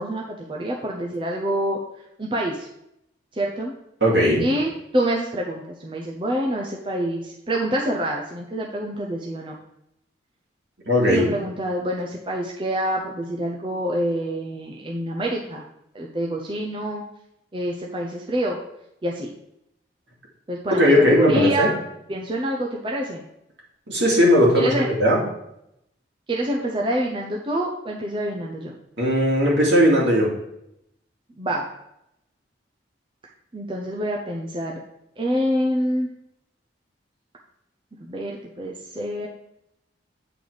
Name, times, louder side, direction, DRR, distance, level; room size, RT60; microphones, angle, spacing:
voice 1, 0.0-1.8 2.2-2.7 3.3-3.8 4.4-9.6 11.1-15.6 15.9-17.0 17.5-18.6 19.0-19.3 20.5-21.7 22.1-23.2 24.5-24.9 26.3-28.7 31.4-31.7 33.5-34.8 35.2-36.1 38.0-39.3, right 1 dB, 25° right, -1 dB, 0.6 m, -26 dB
voice 2, 4.0-4.4 10.9-11.3 20.7-21.7 23.9-25.2 29.0-30.3, equal, 70° right, -4 dB, 2.4 m, -18 dB
8.7 x 4.0 x 4.9 m, 0.81 s
head